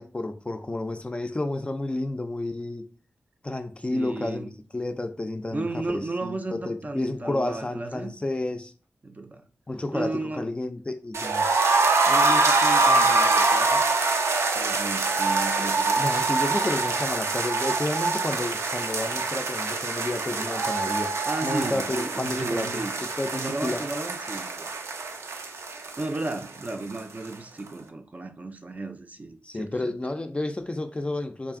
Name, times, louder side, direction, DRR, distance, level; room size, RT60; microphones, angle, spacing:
voice 1, 0.0-2.9 3.4-8.7 9.7-11.5 16.0-21.2 21.4-22.8 23.2-23.8 29.4-31.6, left 2 dB, 25° left, 0.4 m, -31 dB
voice 2, 3.9-4.5 5.5-8.1 9.0-9.5 9.9-10.5 12.0-13.8 14.5-16.1 21.3-22.9 23.3-24.8 26.0-30.0, right 2 dB, 35° right, 0.5 m, -34 dB
sound 1, 11.1-27.0 27.2-27.3 27.7-27.8, right 3 dB, 85° right, 0.5 m, -24 dB
3.8 x 2.4 x 3.5 m
wide cardioid pair, 85°, 5 cm